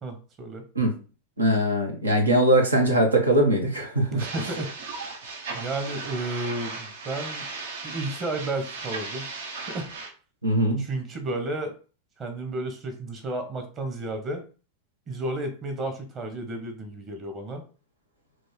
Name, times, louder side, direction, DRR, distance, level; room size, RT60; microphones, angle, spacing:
voice 1, 0.0-0.6 4.1-4.7 5.5-7.5 7.8-9.3 9.7-9.9 10.8-11.7 12.2-14.4 15.1-17.6, right 2 dB, 30° right, 6 dB, 1.2 m, -32 dB
voice 2, 1.4-4.2 10.4-10.8, right 1 dB, 80° right, 1 dB, 1.2 m, -21 dB
sound 1, 4.2-10.1, right 4 dB, 60° right, 0.9 m, -36 dB
3.2 x 3.1 x 4.5 m, 0.36 s
figure-of-eight pair, 90°, 0 cm